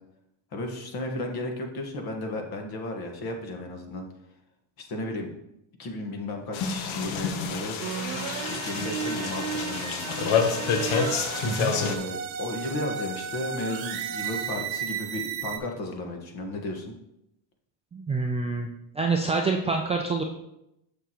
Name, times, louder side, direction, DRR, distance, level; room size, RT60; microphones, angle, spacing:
voice 1, 0.5-4.0 4.8-5.3 5.8-7.8 8.3-10.5 11.7-16.9, left 1 dB, 50° left, 3 dB, 1.5 m, -34 dB
sound 1, 6.5-12.0, left 6 dB, 70° left, 1.1 m, -28 dB
sound 2, 7.8-15.6, right 7 dB, 65° right, 1.0 m, -34 dB
voice 2, 17.9-18.7 19.0-20.2, right 3 dB, 15° right, 1 dB, 0.4 m, -26 dB
6.9 x 6.7 x 3.0 m, 0.84 s
supercardioid pair, 115°, 50 cm